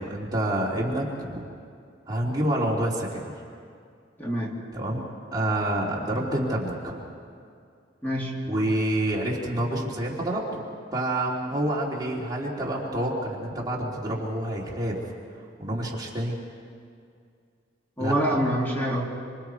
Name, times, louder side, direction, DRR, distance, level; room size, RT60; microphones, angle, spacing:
voice 1, 0.0-1.4 2.1-3.3 4.7-5.0 5.3-7.0 8.5-10.6 10.9-15.0 15.6-16.4 18.0-18.4, right 1 dB, 20° right, -4 dB, 3.1 m, -28 dB
voice 2, 4.2-4.6 8.0-8.4 18.0-19.0, equal, 10° left, -4 dB, 3.2 m, -26 dB
26.5 x 26.5 x 4.7 m, 2.3 s
head